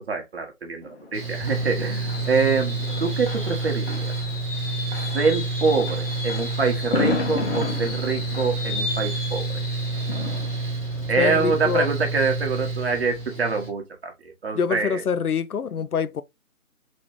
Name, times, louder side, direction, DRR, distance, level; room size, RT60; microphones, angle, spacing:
voice 1, 0.1-4.1 5.1-9.6 11.1-15.0, right 4 dB, 45° right, 1.4 m, -25 dB
Fireworks, 0.8-12.5 12.9-13.2 13.4-13.5, left 3 dB, 40° left, 1.3 m, -32 dB
Mechanical fan, 1.1-13.7, right 3 dB, 5° left, 1.6 m, -29 dB
sound 1, 1.1-8.1, right 5 dB, 15° right, 1.2 m, -47 dB
voice 2, 11.2-11.9 14.5-16.2, left 6 dB, 85° left, 0.6 m, -25 dB
4.2 x 3.3 x 3.2 m
figure-of-eight pair, 150°, 43 cm